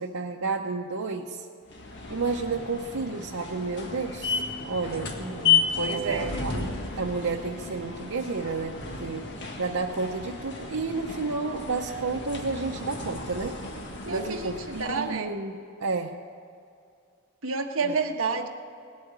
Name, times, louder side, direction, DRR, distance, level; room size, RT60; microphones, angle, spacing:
voice 1, 0.0-1.5 2.1-5.1 5.9-9.3 9.6-13.6 14.1-16.2 17.8-18.0, right 4 dB, 85° right, 0 dB, 0.8 m, -31 dB
sound 1, 1.7-15.2, left 5 dB, 55° left, 1.7 m, -32 dB
voice 2, 5.2-6.4 14.0-15.3 17.4-18.5, right 4 dB, 60° right, 2 dB, 1.4 m, -30 dB
18.5 x 8.6 x 8.8 m, 2.4 s
head